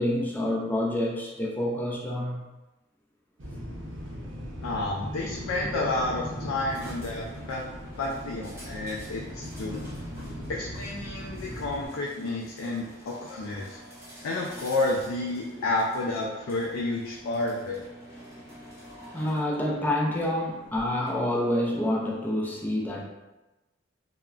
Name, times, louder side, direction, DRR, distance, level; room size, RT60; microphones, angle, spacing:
voice 1, 0.0-2.4 10.2-10.3 18.3-23.0, left 1 dB, 10° left, -3 dB, 0.4 m, -28 dB
sound 1, 3.4-11.9, equal, 60° right, 0.7 m, -38 dB
voice 2, 4.6-7.7 8.0-9.8 10.5-13.8 14.2-17.8, left 2 dB, 90° left, -2 dB, 0.4 m, -30 dB
sound 2, 6.7-21.1, equal, 15° right, 0.9 m, -48 dB
3.5 x 2.1 x 2.3 m, 1.0 s
head